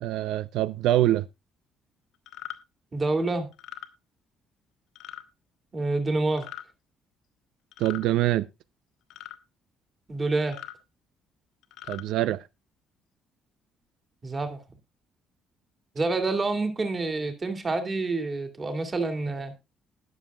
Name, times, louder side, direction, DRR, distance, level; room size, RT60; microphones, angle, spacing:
voice 1, 0.0-1.3 7.8-8.5 11.9-12.4, right 14 dB, 85° right, 0.5 m, -24 dB
sound 1, 2.3-2.6 3.5-3.9 5.0-5.2 6.3-6.7 7.7-8.1 9.1-9.4 10.4-10.8 11.6-12.0, left 13 dB, 80° left, 1.6 m, -41 dB
voice 2, 2.9-3.5 5.7-6.5 10.1-10.6 14.2-14.6 15.9-19.5, right 3 dB, 20° right, 2.2 m, -27 dB
20.5 x 7.2 x 2.3 m
cardioid pair, 170°, 0 cm